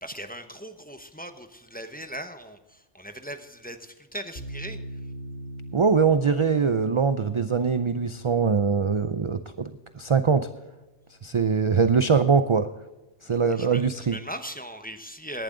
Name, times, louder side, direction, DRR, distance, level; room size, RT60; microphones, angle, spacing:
voice 1, 0.0-5.0 13.3-15.4, equal, 10° left, 7 dB, 0.9 m, -39 dB
sound 1, 4.4-11.5, right 1 dB, 55° left, 2.7 m, -42 dB
voice 2, 5.7-10.5 11.2-12.7 13.2-14.2, right 5 dB, 40° right, 11 dB, 0.4 m, -22 dB
17.5 x 11.5 x 3.8 m, 1.1 s
omnidirectional pair, 1.2 m